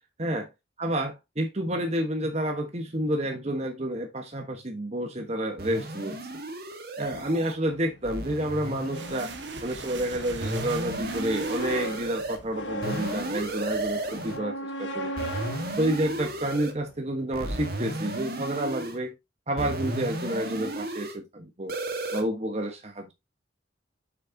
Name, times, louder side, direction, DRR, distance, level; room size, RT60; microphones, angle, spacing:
voice 1, 0.8-6.3 7.0-9.3 9.6-15.1 15.8-19.1 19.5-21.7 22.1-23.1, right 1 dB, 35° right, 1.3 m, -29 dB
sound 1, 5.6-7.5 8.0-10.0 10.4-12.4 12.8-14.4 15.2-16.7 17.3-19.0 19.6-21.2 21.7-22.2, right 1 dB, 55° right, 1.7 m, -34 dB
sound 2, 7.0-17.0, right 1 dB, 75° left, 1.4 m, -39 dB
sound 3, 8.9-14.2, right 4 dB, 75° right, 1.3 m, -44 dB
7.6 x 6.5 x 2.8 m
head